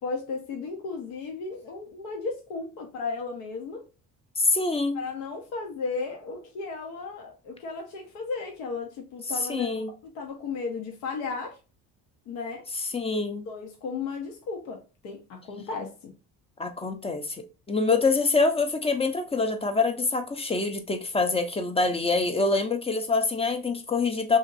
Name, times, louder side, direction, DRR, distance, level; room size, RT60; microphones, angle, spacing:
voice 1, 0.0-3.9 4.9-11.6 12.3-12.6 13.5-16.1, left 4 dB, 90° left, 0.7 m, -35 dB
voice 2, 4.4-5.0 9.5-9.9 12.9-13.4 16.6-17.4 17.7-24.4, left 3 dB, 15° left, 0.4 m, -25 dB
2.8 x 2.6 x 2.5 m
supercardioid pair, 85°, 40 cm